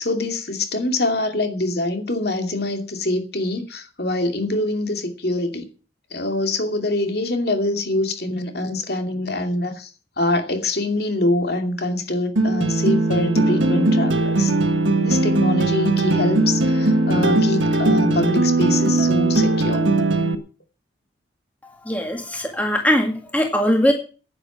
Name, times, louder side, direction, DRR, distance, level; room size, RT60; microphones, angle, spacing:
voice 1, 0.0-5.7 6.1-9.9 10.2-14.5 15.0-19.9, left 2 dB, 55° left, 2.6 m, -24 dB
sound 1, 12.4-20.4, right 2 dB, 85° right, 1.7 m, -19 dB
voice 2, 21.6-23.9, equal, 10° left, 2.0 m, -21 dB
10.5 x 9.1 x 8.7 m
head